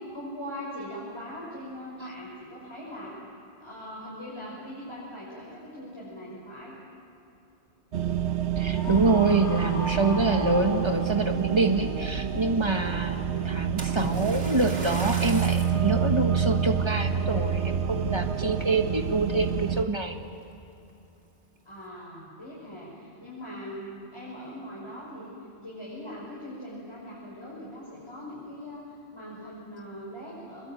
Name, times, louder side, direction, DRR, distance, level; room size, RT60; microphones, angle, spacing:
voice 1, 0.1-3.2 3.6-6.8 21.6-25.3 25.6-30.7, equal, 25° left, -7 dB, 6.0 m, -41 dB
sound 1, 7.9-19.9, right 8 dB, 85° right, 1.2 m, -28 dB
voice 2, 8.6-20.2, right 2 dB, 25° right, 5 dB, 1.6 m, -26 dB
Screaming, 8.7-11.4, right 1 dB, 85° left, 3.3 m, -37 dB
Splash splatter, 13.8-15.8 16.5-16.7 17.3-17.4, right 2 dB, 65° right, 2.5 m, -36 dB
25.5 x 21.0 x 9.1 m, 2.8 s
omnidirectional pair, 1.1 m